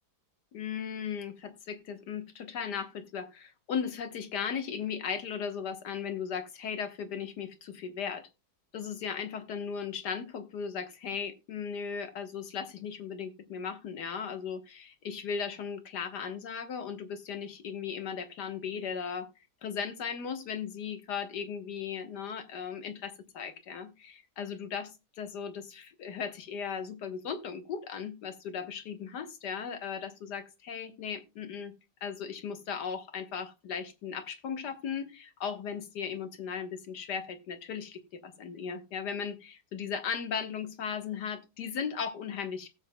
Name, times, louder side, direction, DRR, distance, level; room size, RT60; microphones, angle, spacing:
voice 1, 0.5-8.3 8.7-19.3 19.6-31.7 32.0-42.7, left 7 dB, 80° left, 8 dB, 1.8 m, -37 dB
18.5 x 7.7 x 2.2 m, 0.27 s
omnidirectional pair, 1.8 m